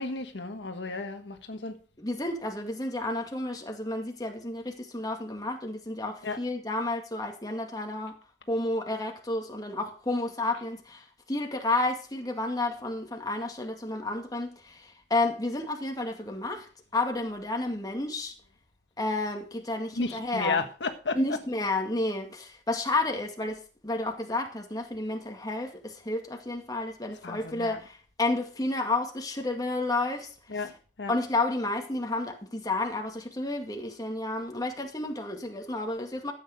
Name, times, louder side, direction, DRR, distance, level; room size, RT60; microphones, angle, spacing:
voice 1, 0.0-1.7 6.2-6.4 20.0-21.2 27.2-27.8 30.5-30.7 31.0-31.1, left 3 dB, 90° left, 1.4 m, -32 dB
voice 2, 2.0-8.2 8.5-18.3 19.0-20.6 21.1-30.6 31.1-36.3, left 2 dB, 20° left, 2.1 m, -31 dB
13.5 x 8.7 x 5.1 m
head